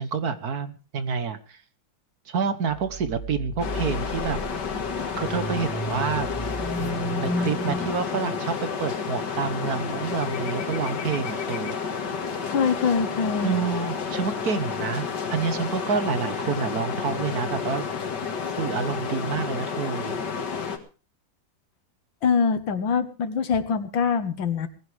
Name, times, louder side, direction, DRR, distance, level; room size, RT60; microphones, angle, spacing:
voice 1, 0.0-1.6 2.3-4.4 5.2-6.3 6.8-8.5 8.8-11.8 13.4-17.8 18.6-20.2, right 6 dB, 55° right, 11 dB, 1.7 m, -28 dB
sound 1, 2.7-7.9, equal, ahead, 1.3 m, -33 dB
sound 2, 3.6-20.8, left 6 dB, 65° left, 2.4 m, -30 dB
voice 2, 12.5-13.5 22.2-24.7, left 6 dB, 85° left, 10 dB, 2.2 m, -24 dB
19.5 x 15.5 x 3.5 m, 0.35 s
omnidirectional pair, 2.0 m